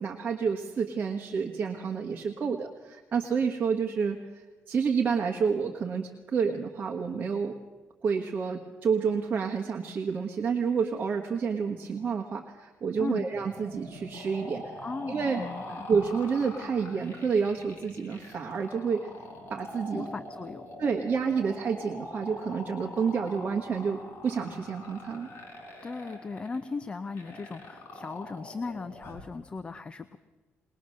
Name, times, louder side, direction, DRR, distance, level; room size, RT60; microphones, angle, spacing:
voice 1, 0.0-7.6 8.0-14.7 15.1-15.4 15.9-19.1 19.5-20.1 20.8-25.3, right 6 dB, 35° right, 1 dB, 1.4 m, -29 dB
sound 1, 13.3-29.3, left 1 dB, 50° left, 5.3 m, -44 dB
voice 2, 14.8-15.9 19.9-20.7 25.8-30.2, left 4 dB, 20° left, 10 dB, 0.6 m, -37 dB
21.0 x 20.5 x 6.5 m, 1.3 s
cardioid pair, 150°, 5 cm